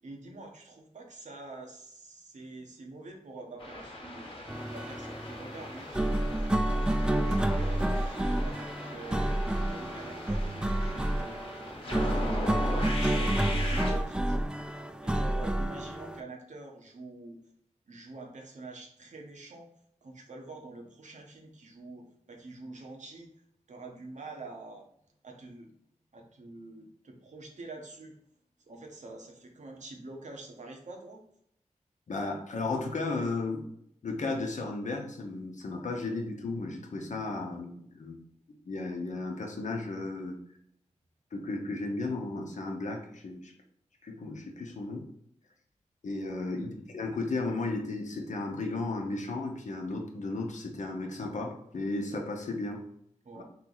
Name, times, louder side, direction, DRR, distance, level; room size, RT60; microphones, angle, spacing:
voice 1, 0.0-10.5 10.8-11.4 11.8-14.8 15.0-17.4 17.9-19.7 20.0-23.3 23.7-24.8 25.2-25.7 26.1-28.2 28.7-31.2 46.6-46.8 53.2-53.4, right 2 dB, 70° right, 1 dB, 0.9 m, -46 dB
sound 1, 3.6-13.9, left 1 dB, 45° left, 1.1 m, -40 dB
sound 2, 4.5-16.2, right 1 dB, 5° right, 0.3 m, -29 dB
voice 2, 32.1-33.7 34.0-38.2 38.7-40.3 41.3-43.5 44.0-45.0 46.0-52.8 53.4-53.5, left 3 dB, 75° left, 2 dB, 0.8 m, -34 dB
3.3 x 3.0 x 3.9 m, 0.69 s
cardioid pair, 60°, 13 cm